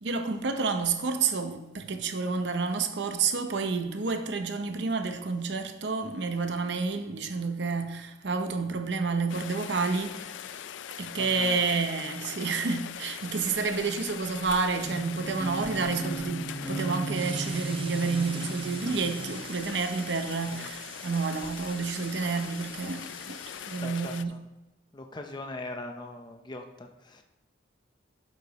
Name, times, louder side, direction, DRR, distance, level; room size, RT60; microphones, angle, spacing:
voice 1, 0.0-10.6 11.0-23.4 23.7-24.3, right 4 dB, 65° right, 0.7 m, -30 dB
Rain, 9.3-24.2, left 10 dB, 75° left, 0.4 m, -41 dB
voice 2, 11.2-11.6 20.5-20.7 23.8-24.4 24.9-27.2, left 2 dB, 25° left, 0.6 m, -41 dB
sound 1, 14.8-19.4, right 2 dB, 5° right, 1.3 m, -36 dB
sound 2, 17.1-23.8, right 6 dB, 30° right, 0.5 m, -46 dB
11.5 x 4.9 x 4.1 m
head